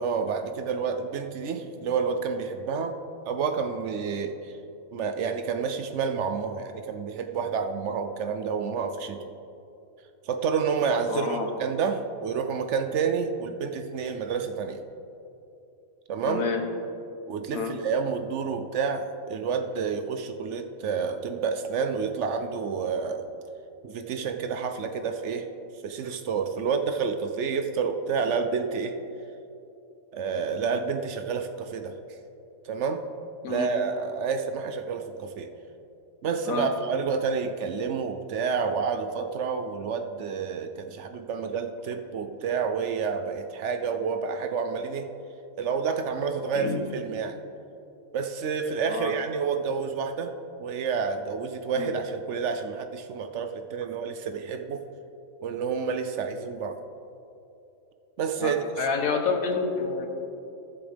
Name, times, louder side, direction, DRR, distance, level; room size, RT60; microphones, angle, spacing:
voice 1, 0.0-3.0 3.3-4.5 4.9-9.3 10.2-14.8 16.1-16.4 17.3-23.3 23.8-25.5 25.8-29.0 30.1-32.0 32.6-33.0 33.5-35.5 36.2-45.1 45.6-47.4 48.1-50.3 50.6-54.8 55.4-56.8 58.2-58.6, right 5 dB, 65° right, 7 dB, 0.8 m, -29 dB
voice 2, 11.1-11.5 16.3-16.6 17.5-17.7 33.4-33.7 36.5-36.7 46.5-46.8 48.9-49.1 51.7-51.9 58.4-60.1, left 4 dB, 80° left, 4 dB, 1.5 m, -28 dB
16.0 x 7.1 x 3.4 m, 2.9 s
omnidirectional pair, 1.4 m